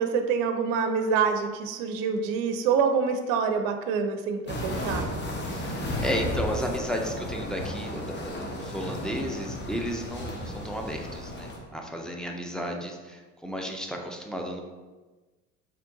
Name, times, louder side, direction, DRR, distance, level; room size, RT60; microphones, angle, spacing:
voice 1, 0.0-5.1, right 6 dB, 55° right, 7 dB, 0.5 m, -26 dB
sound 1, 4.5-11.6, left 1 dB, 25° left, 0.9 m, -34 dB
voice 2, 5.5-14.6, equal, ahead, 1 dB, 0.5 m, -33 dB
4.2 x 3.0 x 2.7 m, 1.3 s
hypercardioid pair, 60°, 40 cm